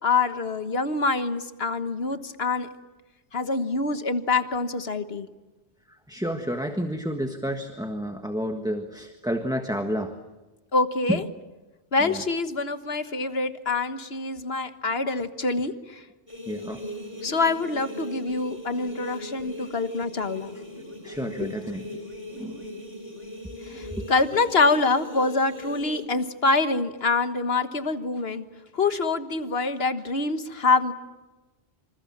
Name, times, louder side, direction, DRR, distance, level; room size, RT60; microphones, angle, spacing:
voice 1, 0.0-2.7 3.3-5.3 10.7-11.2 11.9-16.0 17.2-20.6 21.4-21.5 23.6-28.4 28.7-30.9, left 3 dB, 60° left, 10 dB, 1.6 m, -25 dB
voice 2, 5.9-10.1 11.1-11.2 12.0-12.2 16.5-16.8 21.0-21.8 22.4-22.6 23.9-24.1, equal, 5° right, 5 dB, 1.5 m, -30 dB
sound 1, 16.3-26.1, left 1 dB, 25° left, 4.4 m, -39 dB
27.0 x 27.0 x 7.3 m, 1.2 s
omnidirectional pair, 1.2 m